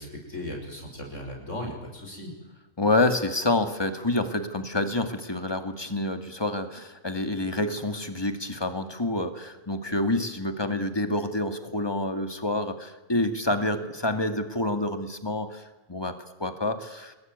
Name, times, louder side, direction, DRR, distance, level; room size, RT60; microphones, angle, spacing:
voice 1, 0.0-2.3, left 1 dB, 55° left, 1 dB, 6.4 m, -37 dB
voice 2, 2.8-17.1, left 2 dB, 15° left, 8 dB, 2.2 m, -28 dB
28.5 x 21.0 x 9.5 m, 1.1 s
omnidirectional pair, 1.5 m